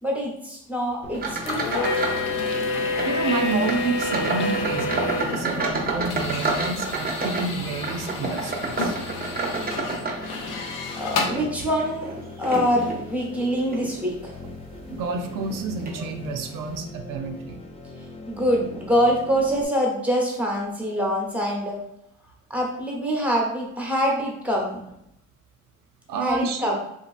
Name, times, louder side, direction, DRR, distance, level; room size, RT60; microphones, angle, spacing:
voice 1, 0.0-2.0 5.1-5.4 11.0-12.1 12.4-14.4 18.0-21.8 22.5-24.8 26.2-26.8, equal, 5° right, -2 dB, 0.8 m, -25 dB
sound 1, 1.0-19.7, left 3 dB, 20° left, 0.4 m, -40 dB
sound 2, 1.1-2.3 2.6-3.1 3.6-10.7 11.2-13.0 13.6-13.9 14.4-14.6 15.4-15.6 15.9-16.0, right 3 dB, 30° right, 0.6 m, -30 dB
sound 3, 1.4-11.3, left 3 dB, 75° left, 0.6 m, -29 dB
voice 2, 3.0-9.0 14.9-17.6 26.1-26.8, right 4 dB, 80° right, 4 dB, 0.5 m, -29 dB
2.9 x 2.4 x 2.4 m, 0.77 s
cardioid pair, 85°, 32 cm